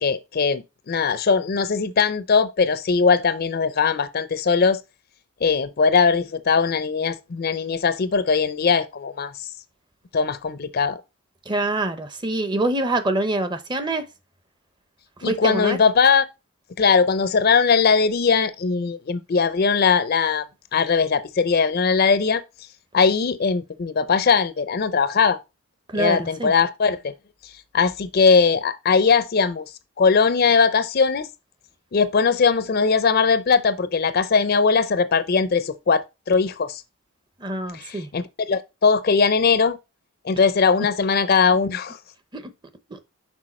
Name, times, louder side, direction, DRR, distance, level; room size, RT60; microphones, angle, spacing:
voice 1, 0.0-4.8 5.4-9.3 10.1-11.0 15.2-16.2 16.8-20.5 20.7-22.4 22.9-25.4 25.9-27.1 27.7-29.6 30.0-31.3 31.9-36.8 37.7-39.8 40.2-42.0, left 5 dB, 45° left, 0.5 m, -20 dB
voice 2, 11.5-14.0 15.2-15.8 25.9-26.5 37.4-38.1 42.3-42.5 42.9-43.0, right 2 dB, 20° right, 0.6 m, -25 dB
6.2 x 4.6 x 4.2 m
head